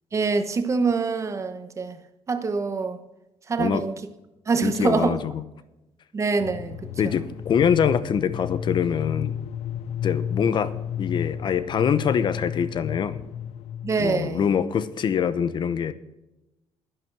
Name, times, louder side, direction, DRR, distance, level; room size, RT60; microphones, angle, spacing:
voice 1, 0.1-2.0 2.3-3.0 3.5-3.9 4.5-5.1 6.1-6.8 13.8-14.5, right 4 dB, 30° right, 1.0 m, -25 dB
voice 2, 4.6-5.4 7.0-9.4 10.0-10.7 11.0-13.2 14.0-15.9, left 7 dB, 45° left, 0.8 m, -24 dB
sound 1, 6.4-14.2, left 9 dB, 80° left, 0.5 m, -32 dB
11.5 x 11.0 x 4.7 m
cardioid pair, 145°, 11 cm